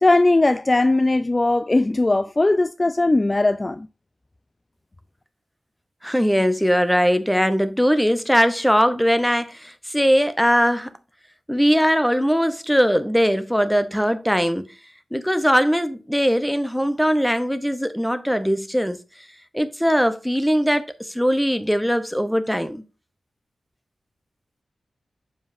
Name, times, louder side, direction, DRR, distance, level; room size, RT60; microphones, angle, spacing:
voice 1, 0.0-3.9, left 2 dB, 30° left, 0.3 m, -19 dB
voice 2, 6.0-10.9 11.5-14.7 15.1-19.0 19.5-22.8, equal, ahead, 0.8 m, -20 dB
7.1 x 5.2 x 2.6 m
cardioid pair, 65°, 0 cm